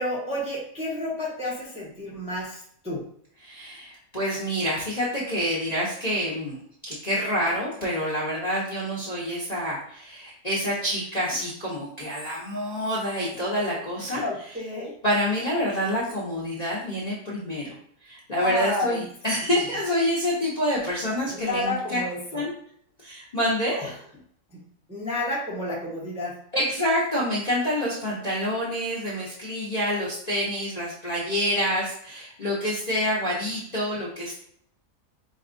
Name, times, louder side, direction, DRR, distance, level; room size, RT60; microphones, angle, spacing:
voice 1, 0.0-3.0 14.1-14.9 18.4-19.1 19.4-19.5 21.3-22.4 23.8-23.9 24.9-26.4, left 1 dB, 5° right, -5 dB, 0.7 m, -30 dB
voice 2, 3.4-6.6 6.9-14.2 15.0-17.7 18.0-22.0 22.3-22.5 23.0-23.9 26.5-34.3, equal, 35° left, -6 dB, 0.7 m, -27 dB
5.1 x 2.3 x 2.5 m, 0.64 s
omnidirectional pair, 1.7 m